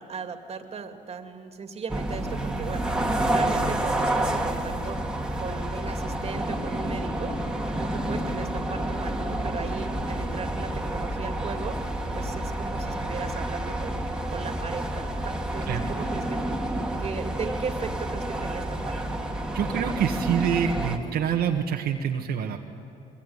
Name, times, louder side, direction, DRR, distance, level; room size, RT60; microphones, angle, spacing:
voice 1, 0.0-5.0 5.4-7.5 7.7-11.8 12.2-14.0 14.3-16.4 16.7-19.0, right 5 dB, 35° right, 6 dB, 2.5 m, -37 dB
sound 1, 1.9-21.0, right 1 dB, 5° right, 2.4 m, -29 dB
voice 2, 19.5-22.6, right 8 dB, 65° right, 1 dB, 1.5 m, -26 dB
25.0 x 22.5 x 9.6 m, 2.6 s
cardioid pair, 110°, 17 cm